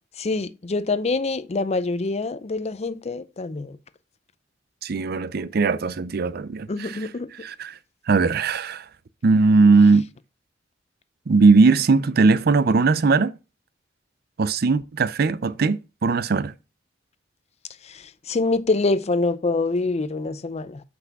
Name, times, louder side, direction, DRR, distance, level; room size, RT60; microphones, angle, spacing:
voice 1, 0.2-3.8 6.7-7.3 17.8-20.8, left 3 dB, 35° left, 0.5 m, -25 dB
voice 2, 4.8-7.1 7.4-7.8 8.1-8.8 9.2-10.1 11.3-13.4 14.4-16.5, right 4 dB, 55° right, 0.5 m, -19 dB
6.0 x 5.6 x 6.0 m
head